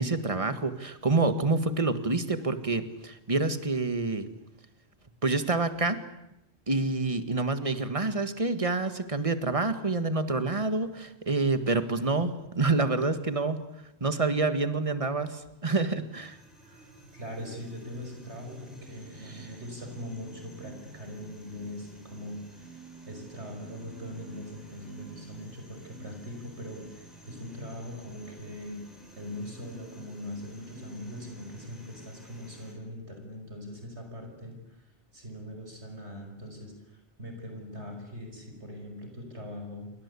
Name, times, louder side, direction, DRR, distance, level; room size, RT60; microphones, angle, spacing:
voice 1, 0.0-4.3 5.2-6.0 6.7-13.6 14.0-16.4 19.3-19.5, right 3 dB, 30° right, 10 dB, 1.9 m, -27 dB
sound 1, 16.1-32.7, right 3 dB, ahead, 7.5 m, -51 dB
voice 2, 17.1-28.8 29.2-39.9, left 1 dB, 85° right, 4 dB, 6.0 m, -41 dB
28.0 x 23.5 x 8.4 m, 0.85 s
omnidirectional pair, 1.1 m